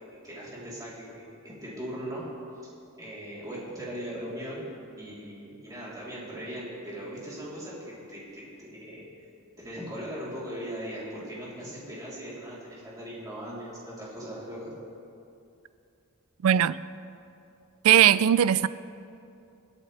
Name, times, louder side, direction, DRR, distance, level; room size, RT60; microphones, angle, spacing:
voice 1, 0.0-2.2 3.0-4.6 5.0-9.0 9.6-14.7, equal, 15° right, 3.4 m, -39 dB
voice 2, 16.4-16.8 17.8-18.7, right 10 dB, 70° right, 0.3 m, -19 dB
25.0 x 8.6 x 3.3 m
head